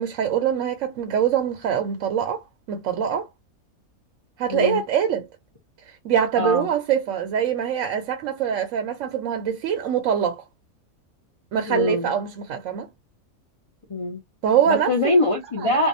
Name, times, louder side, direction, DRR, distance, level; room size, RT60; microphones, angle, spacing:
voice 1, 0.0-3.3 4.4-5.3 5.9-10.4 11.5-12.9 14.4-15.1 15.6-15.7, right 8 dB, 70° right, 0.9 m, -24 dB
voice 2, 4.5-4.8 6.4-6.7 11.7-12.1 13.9-14.2 14.7-15.9, left 2 dB, 35° left, 0.5 m, -23 dB
2.6 x 2.2 x 2.5 m
omnidirectional pair, 1.5 m